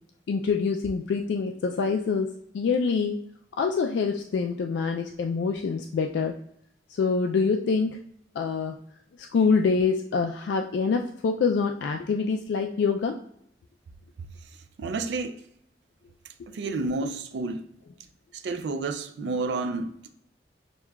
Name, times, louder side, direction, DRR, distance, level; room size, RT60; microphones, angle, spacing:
voice 1, 0.3-3.2 3.6-6.3 6.9-8.0 8.4-8.8 9.2-13.2, left 5 dB, 85° left, 0.3 m, -25 dB
voice 2, 14.8-15.4 16.5-17.6 18.3-20.1, right 3 dB, 85° right, 0.4 m, -30 dB
6.1 x 2.3 x 2.3 m
head